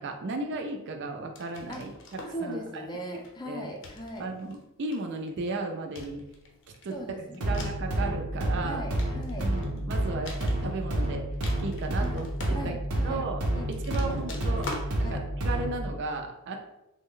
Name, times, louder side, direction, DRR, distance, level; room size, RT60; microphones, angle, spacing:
voice 1, 0.0-1.9 2.4-2.9 3.5-3.7 4.2-6.3 6.8-8.9 9.4-11.3 11.6-12.3 12.6-12.7 13.0-13.5 13.9-14.7 15.0-16.6, right 3 dB, 55° right, 4 dB, 0.4 m, -35 dB
sound 1, 1.4-2.4 3.2-3.4 3.8-4.5 4.9-5.4 5.9-7.9 8.6-9.8 10.3-11.1 11.3-13.0 13.6-14.9, left 2 dB, 60° left, 0.6 m, -43 dB
voice 2, 2.3-4.3 6.9-7.6 8.6-9.5 12.0-12.1 12.5-13.2 13.5-15.2, equal, 20° left, 1 dB, 0.5 m, -39 dB
sound 2, 7.4-15.9, right 1 dB, 90° right, 0.7 m, -30 dB
3.4 x 2.1 x 3.7 m, 0.90 s
head